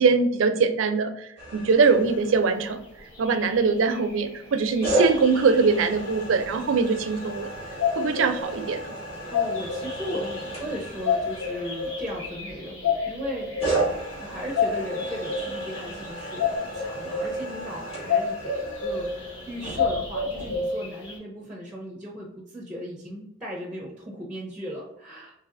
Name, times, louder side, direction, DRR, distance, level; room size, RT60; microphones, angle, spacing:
voice 1, 0.0-2.8 3.2-7.5 8.0-8.8, right 4 dB, 90° right, 8 dB, 0.4 m, -22 dB
sound 1, 1.4-2.9 4.8-12.6 13.6-20.6, right 1 dB, 30° left, 1.4 m, -34 dB
sound 2, 2.8-2.9 3.1-6.2 7.7-21.2, left 5 dB, 90° left, 1.1 m, -30 dB
voice 2, 9.3-25.4, equal, 5° right, -1 dB, 0.5 m, -37 dB
4.0 x 2.8 x 2.5 m, 0.81 s
head